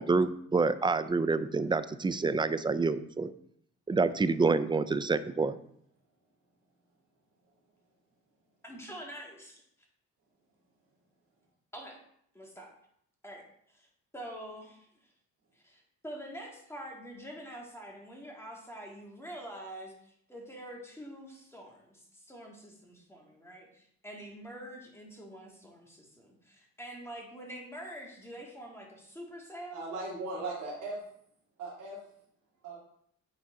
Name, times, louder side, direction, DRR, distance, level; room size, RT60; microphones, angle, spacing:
voice 1, 0.0-3.3 3.9-5.6, right 4 dB, 15° right, 13 dB, 0.3 m, -27 dB
voice 2, 8.6-9.6 11.7-12.0 12.3-12.7 13.2-13.9 14.1-15.1 15.5-29.9, right 1 dB, 10° left, -1 dB, 1.8 m, -46 dB
voice 3, 29.7-31.0 31.6-32.0 32.6-32.8, right 2 dB, 75° right, -9 dB, 2.4 m, -38 dB
8.7 x 3.9 x 3.7 m, 0.69 s
cardioid pair, 90°, 30 cm